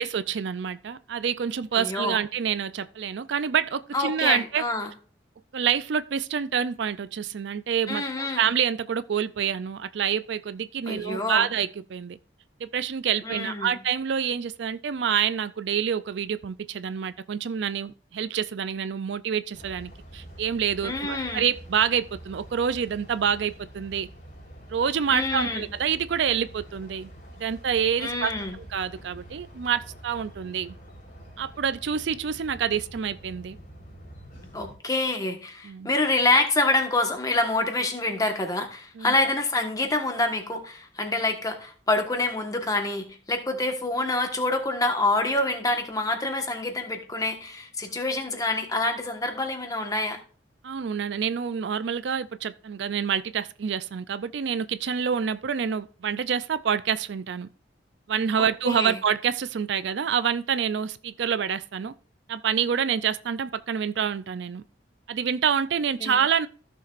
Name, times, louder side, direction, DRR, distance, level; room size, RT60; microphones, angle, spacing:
voice 1, 0.0-4.6 5.5-12.2 12.6-24.1 24.7-27.1 27.4-28.3 28.6-30.7 31.4-33.6 35.6-35.9 39.0-39.1 50.6-57.5 58.1-61.9 62.3-64.6 65.1-66.5, right 7 dB, 65° right, 0.4 m, -27 dB
voice 2, 1.7-2.2 3.9-4.9 7.9-8.5 10.9-11.5 13.2-13.7 20.8-21.4 25.1-25.6 28.0-28.6 34.5-50.2 58.6-59.0 66.0-66.2, left 2 dB, 20° left, 1.4 m, -26 dB
sound 1, 19.5-34.8, equal, 50° left, 3.4 m, -46 dB
14.5 x 6.8 x 2.5 m
head